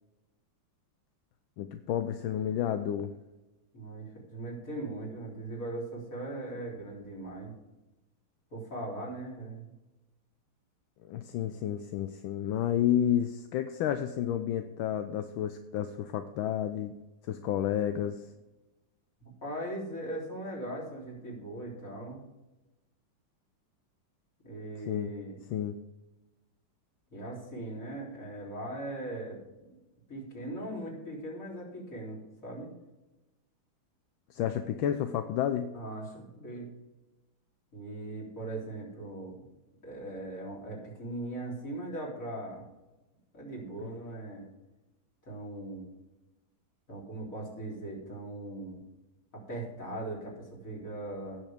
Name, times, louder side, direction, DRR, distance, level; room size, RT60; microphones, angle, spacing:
voice 1, 1.6-3.1 11.1-16.9 17.3-18.3 24.9-25.1 25.5-25.8 34.3-35.7, left 10 dB, 75° left, 8 dB, 1.4 m, -31 dB
voice 2, 3.7-7.5 8.5-9.7 19.2-22.2 24.4-25.3 27.1-29.4 30.1-32.7 35.7-36.7 37.7-39.5 39.8-42.6 43.3-44.5 45.3-45.9 46.9-48.8 49.3-51.4, right 1 dB, 40° left, -4 dB, 3.9 m, -39 dB
17.5 x 7.1 x 3.5 m, 1.0 s
omnidirectional pair, 2.3 m